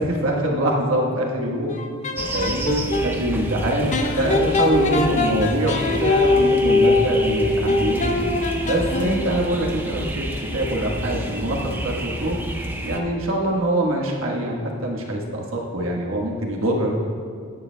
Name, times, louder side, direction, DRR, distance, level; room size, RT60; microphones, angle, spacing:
voice 1, 0.0-1.8 2.3-8.3 8.6-10.3 10.5-12.4 12.8-17.0, right 1 dB, 70° right, 0 dB, 1.3 m, -24 dB
sound 1, 1.7-3.1 3.9-9.4, left 2 dB, 35° left, 0.6 m, -22 dB
sound 2, 2.2-13.0, right 1 dB, 10° right, 0.6 m, -30 dB
11.5 x 10.5 x 2.2 m, 2.2 s
head